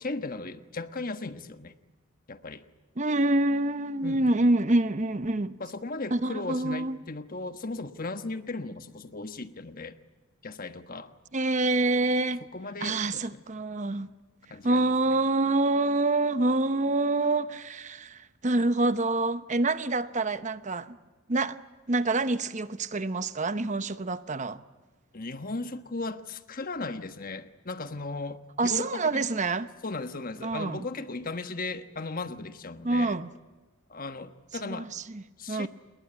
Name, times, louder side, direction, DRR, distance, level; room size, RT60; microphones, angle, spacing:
voice 1, 0.0-1.7 2.3-2.6 4.0-4.4 5.6-10.0 10.4-11.1 12.5-13.4 14.5-14.9 25.1-29.3 29.8-33.2 33.9-34.9 35.4-35.7, left 3 dB, 40° left, 1.3 m, -36 dB
voice 2, 3.0-5.6 6.1-7.0 11.3-12.4 12.8-14.1 14.6-21.0 21.3-21.6 21.9-24.6 28.6-29.7 30.4-30.9 32.8-33.3 34.6-35.2 35.5-35.7, right 2 dB, 35° right, 0.9 m, -26 dB
27.5 x 20.5 x 9.6 m
head